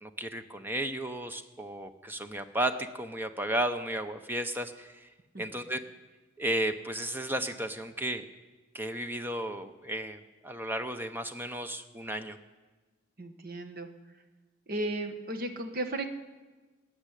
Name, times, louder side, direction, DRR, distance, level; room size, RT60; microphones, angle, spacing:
voice 1, 0.0-5.1 5.4-5.8 6.4-8.2 8.7-12.4, right 1 dB, 10° right, 8 dB, 0.7 m, -34 dB
voice 2, 13.2-14.2 14.7-16.2, right 1 dB, 45° right, 7 dB, 1.3 m, -35 dB
18.5 x 7.5 x 9.9 m, 1.3 s
head